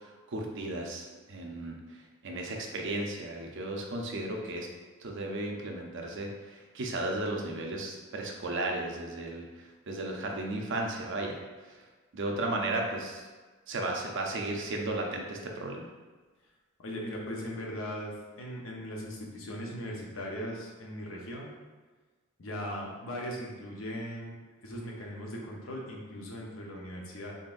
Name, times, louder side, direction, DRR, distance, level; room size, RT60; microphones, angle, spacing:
voice 1, 0.3-1.7 2.2-4.7 5.0-9.4 9.9-11.4 12.1-13.2 13.7-15.9, right 2 dB, 60° right, 1 dB, 0.6 m, -34 dB
voice 2, 16.8-21.5 22.4-24.4 24.6-27.4, equal, 70° left, -2 dB, 0.8 m, -39 dB
3.9 x 3.5 x 2.5 m, 1.3 s
head